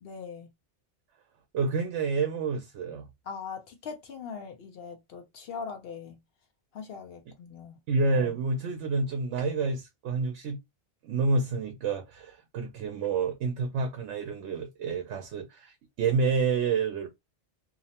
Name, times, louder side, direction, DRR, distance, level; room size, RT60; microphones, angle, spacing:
voice 1, 0.0-0.5 3.3-6.2 6.7-7.7, left 6 dB, 65° left, 0.7 m, -41 dB
voice 2, 1.5-3.1 7.9-10.6 11.0-17.1, right 4 dB, 90° right, 0.9 m, -29 dB
2.7 x 2.0 x 2.7 m
omnidirectional pair, 1.2 m